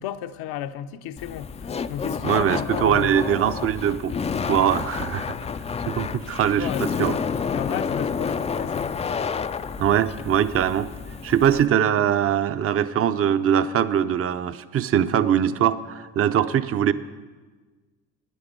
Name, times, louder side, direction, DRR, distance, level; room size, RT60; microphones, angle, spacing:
voice 1, 0.0-3.1 6.1-6.2 6.5-9.2, left 10 dB, 65° left, 0.7 m, -33 dB
Laughter, 1.2-11.7, left 6 dB, 20° left, 0.3 m, -29 dB
voice 2, 2.2-4.2 4.4-5.3 5.9-6.7 7.0-7.2 9.8-10.9 11.2-16.9, right 9 dB, 35° right, 0.6 m, -22 dB
13.0 x 9.6 x 5.2 m
supercardioid pair, 80°, 41 cm